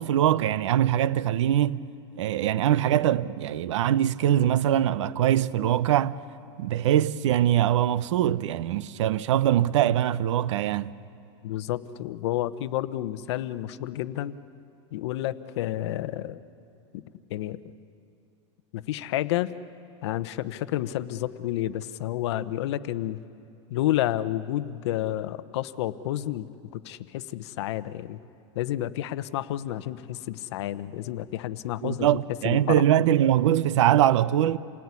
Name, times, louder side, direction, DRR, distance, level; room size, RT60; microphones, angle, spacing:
voice 1, 0.0-1.8 2.2-6.2 6.6-10.9 31.8-34.6, right 11 dB, 80° right, 0.8 m, -22 dB
voice 2, 11.4-14.4 14.9-16.4 16.9-17.0 17.3-17.7 18.7-19.5 20.0-23.2 23.7-26.5 26.7-28.2 28.5-32.1 32.4-32.8, left 13 dB, 65° left, 0.9 m, -30 dB
28.0 x 18.5 x 9.7 m
supercardioid pair, 160°, 15 cm